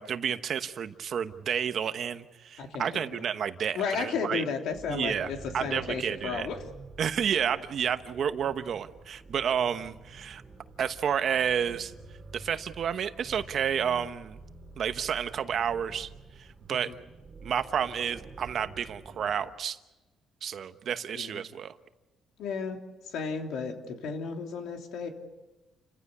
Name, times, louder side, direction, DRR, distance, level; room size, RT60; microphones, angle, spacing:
voice 1, 0.0-4.4 4.9-6.5 7.0-10.4 10.8-11.9 12.3-14.4 14.8-16.1 16.4-16.9 17.4-19.8 20.4-21.7, right 8 dB, 50° right, 10 dB, 1.1 m, -30 dB
voice 2, 2.6-3.2 3.7-6.6 16.7-17.0 21.1-21.4 22.4-22.8 23.0-25.1, left 5 dB, 80° left, 3 dB, 3.2 m, -34 dB
sound 1, 4.7-19.5, right 3 dB, 25° right, 2.2 m, -49 dB
29.5 x 15.5 x 8.5 m, 1.1 s
cardioid pair, 145°, 0 cm